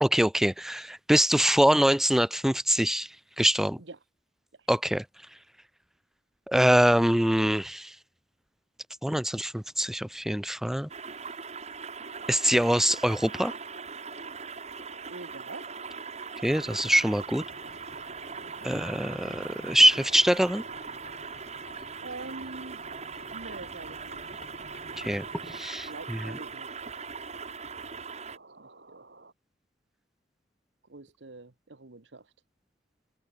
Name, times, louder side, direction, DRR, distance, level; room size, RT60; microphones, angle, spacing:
voice 1, 0.0-3.1 3.4-3.8 4.7-5.0 6.5-7.9 9.0-10.9 12.3-13.5 16.4-17.4 18.6-20.6 25.0-26.4, equal, ahead, 0.4 m, -24 dB
sound 1, 10.9-28.4, right 5 dB, 40° right, 2.7 m, -40 dB
sound 2, 12.0-29.3, right 3 dB, 70° right, 4.3 m, -53 dB
voice 2, 15.1-15.7 18.4-18.7 22.0-22.8 23.3-24.2 25.9-26.7 27.3-27.4 28.6-29.0 30.9-32.2, right 3 dB, 85° right, 1.3 m, -44 dB
sound 3, 16.6-25.6, left 2 dB, 55° left, 2.0 m, -53 dB
head